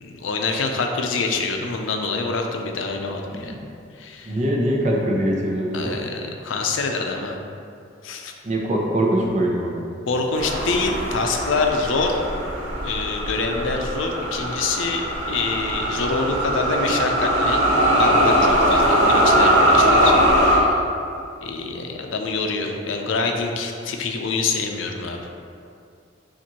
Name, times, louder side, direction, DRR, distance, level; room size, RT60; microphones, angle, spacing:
voice 1, 0.0-3.6 4.0-4.4 5.7-7.4 8.0-8.3 10.1-12.3 12.8-17.6 18.0-20.2 20.4-20.8 21.4-25.2, left 4 dB, 90° left, 3 dB, 0.5 m, -25 dB
voice 2, 4.3-6.0 8.4-9.8, right 1 dB, 40° right, -1 dB, 0.6 m, -22 dB
sound 1, 10.4-20.6, right 1 dB, 70° right, 0.8 m, -20 dB
7.2 x 2.5 x 2.9 m, 2.4 s
head